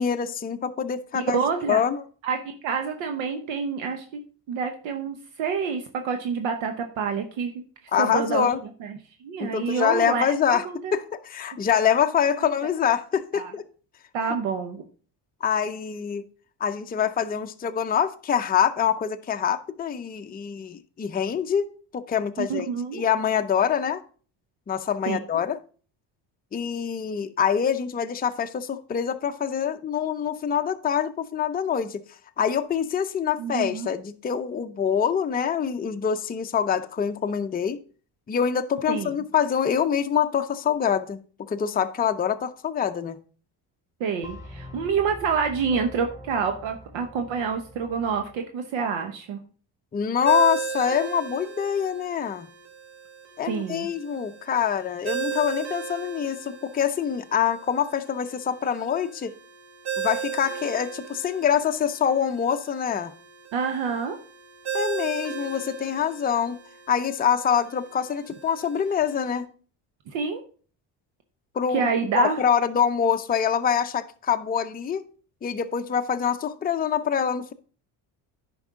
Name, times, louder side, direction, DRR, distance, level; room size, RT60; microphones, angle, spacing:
voice 1, 0.0-1.4 1.7-2.0 7.9-8.6 9.4-10.7 10.9-13.6 15.4-16.2 16.6-21.7 21.9-22.7 22.9-24.0 24.7-25.6 26.5-32.0 32.4-37.8 38.3-41.2 41.5-43.2 49.9-52.5 53.4-59.3 60.0-63.1 64.7-66.6 66.9-69.5 71.5-75.0 75.4-77.5, left 8 dB, 20° left, 0.5 m, -25 dB
voice 2, 1.1-1.8 2.2-4.2 4.5-7.5 8.0-8.5 8.8-11.0 12.4-12.5 13.3-13.5 14.1-14.8 22.4-23.0 25.1-25.2 33.4-33.9 38.9-39.1 44.0-49.4 53.5-53.9 63.5-64.2 70.1-70.4 71.7-72.4, right 6 dB, 75° right, 1.0 m, -27 dB
sound 1, 44.2-48.4, equal, 5° right, 2.9 m, -43 dB
Ringtone, 50.2-69.4, right 7 dB, 60° right, 1.9 m, -36 dB
9.8 x 5.3 x 3.6 m
supercardioid pair, 80°, 46 cm